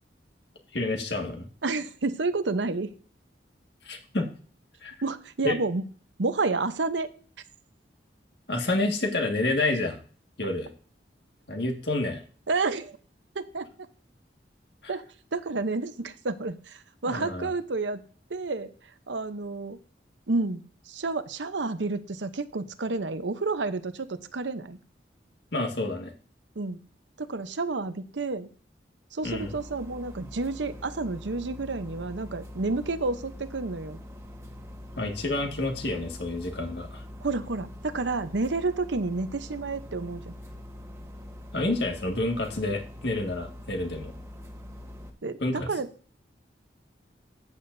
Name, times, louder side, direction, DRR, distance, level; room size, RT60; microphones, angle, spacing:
voice 1, 0.7-1.5 3.8-4.3 4.8-4.9 5.4-5.6 8.5-10.0 10.4-10.7 11.5-12.2 17.0-17.5 25.5-26.1 29.2-29.6 35.0-37.0 41.5-44.1 45.4-45.7, left 2 dB, 70° left, 3 dB, 1.8 m, -29 dB
voice 2, 1.6-2.9 5.0-5.8 6.2-7.1 12.5-13.0 13.3-13.7 14.9-15.0 15.3-18.0 18.3-18.7 19.1-19.8 20.3-24.8 26.6-26.8 27.2-28.5 29.1-34.0 37.2-40.3 45.2-45.9, right 3 dB, 85° right, 11 dB, 0.8 m, -30 dB
sound 1, 29.2-45.1, left 1 dB, 15° right, 1.3 m, -44 dB
13.5 x 8.6 x 2.7 m, 0.42 s
head